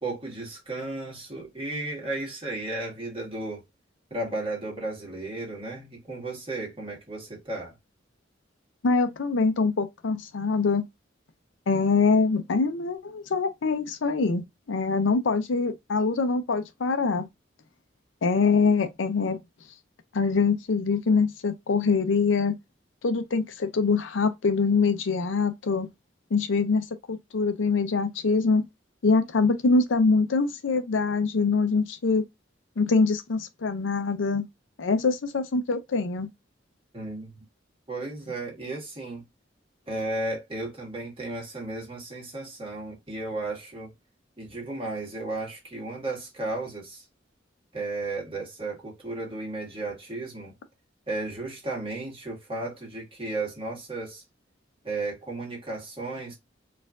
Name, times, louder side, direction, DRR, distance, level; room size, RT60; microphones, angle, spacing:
voice 1, 0.0-3.6 4.1-7.7 36.9-37.4 37.9-39.2 39.9-43.9 44.4-47.0 47.7-50.5 51.1-54.2 54.8-56.4, right 2 dB, 30° right, 1.4 m, -34 dB
voice 2, 8.8-10.8 11.7-17.3 18.2-19.4 20.1-22.6 23.0-25.9 26.3-28.6 29.0-32.2 32.8-34.5 34.8-36.3, left 4 dB, 90° left, 0.5 m, -24 dB
4.3 x 2.5 x 2.3 m
head